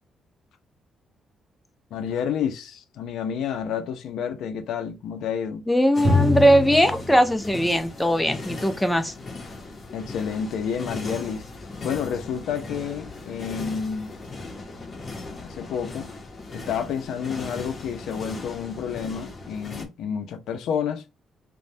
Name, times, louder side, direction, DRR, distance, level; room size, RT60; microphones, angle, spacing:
voice 1, 1.9-5.6 9.9-11.4 11.8-14.1 15.3-16.1 16.5-21.0, left 7 dB, 80° left, 0.4 m, -30 dB
voice 2, 5.7-9.1, equal, 5° left, 0.5 m, -20 dB
sound 1, 5.9-19.8, left 3 dB, 40° left, 0.8 m, -38 dB
Drum, 6.0-9.6, left 2 dB, 45° right, 0.8 m, -27 dB
3.1 x 2.1 x 2.6 m
cardioid pair, 90°, 0 cm